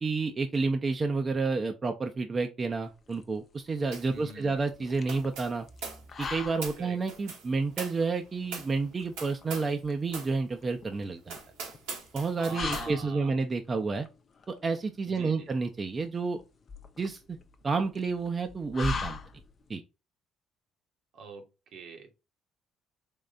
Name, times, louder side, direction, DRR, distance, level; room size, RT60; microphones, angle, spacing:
voice 1, 0.0-5.7 6.2-11.4 12.1-14.1 14.5-16.4 17.0-17.4 17.6-19.2 19.7-19.8, right 4 dB, 35° right, 0.5 m, -30 dB
sound 1, 2.7-19.8, left 4 dB, 45° left, 0.6 m, -42 dB
sound 2, 3.9-4.2 4.4-9.8 10.1-10.4 10.8-10.9 11.3-12.9, right 5 dB, 85° right, 1.5 m, -42 dB
voice 2, 4.1-4.7 6.8-7.0 12.4-13.4 15.0-15.5 21.1-22.2, right 4 dB, 70° right, 1.1 m, -45 dB
3.7 x 3.1 x 2.5 m
supercardioid pair, 70°, 0 cm